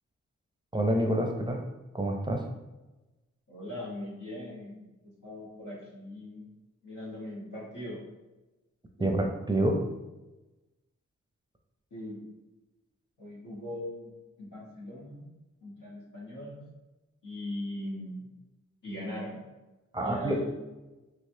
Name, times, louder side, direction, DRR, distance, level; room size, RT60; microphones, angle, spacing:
voice 1, 0.7-1.6 1.9-2.4 9.0-9.8 19.9-20.4, right 1 dB, 15° right, 2 dB, 0.5 m, -27 dB
voice 2, 3.5-4.9 5.2-6.5 6.8-8.0 9.0-9.1 11.9-12.2 13.2-14.1 14.4-15.2 15.6-16.7 17.2-18.3 18.8-19.4 20.0-20.6, left 1 dB, 85° left, -6 dB, 1.2 m, -40 dB
3.1 x 3.1 x 2.6 m, 1.1 s
cardioid pair, 45°, 30 cm